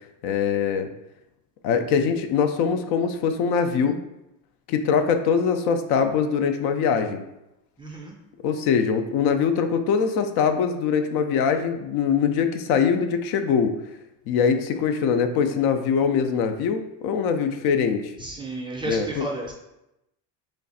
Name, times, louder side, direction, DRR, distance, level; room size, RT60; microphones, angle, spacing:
voice 1, 0.2-0.9 1.6-4.0 4.7-7.2 8.4-13.7 14.3-18.1 18.8-19.3, left 6 dB, 70° left, 7 dB, 0.5 m, -22 dB
voice 2, 7.8-8.1 18.2-19.5, right 2 dB, 15° right, -1 dB, 0.4 m, -32 dB
3.2 x 2.4 x 4.0 m, 0.89 s
cardioid pair, 130°, 39 cm